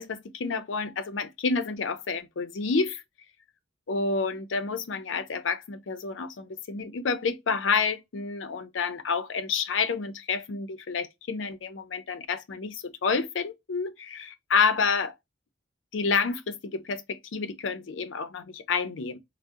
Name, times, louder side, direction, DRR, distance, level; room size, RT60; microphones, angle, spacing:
voice 1, 0.0-3.0 3.9-15.1 15.9-19.2, left 5 dB, 85° left, 0.5 m, -29 dB
3.5 x 2.1 x 2.5 m
head